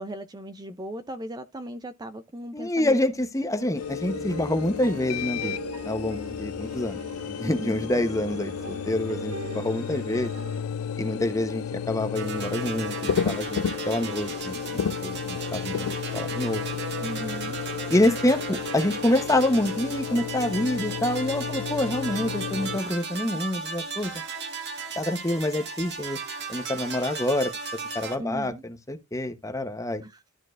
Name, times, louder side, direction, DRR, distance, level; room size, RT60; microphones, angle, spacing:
voice 1, 0.0-3.0 7.4-7.9 17.0-17.6 28.2-28.6 30.0-30.2, right 1 dB, 20° right, 0.4 m, -37 dB
voice 2, 2.5-7.0 7.4-10.3 11.0-16.6 17.9-24.1 25.0-26.2 26.5-27.5 27.9-30.0, left 1 dB, 15° left, 0.9 m, -27 dB
sound 1, 3.5-10.6, right 4 dB, 70° right, 1.5 m, -40 dB
sound 2, 3.7-22.8, left 7 dB, 85° left, 0.4 m, -33 dB
sound 3, 12.2-28.2, right 5 dB, 50° right, 1.6 m, -36 dB
13.0 x 4.4 x 2.5 m
head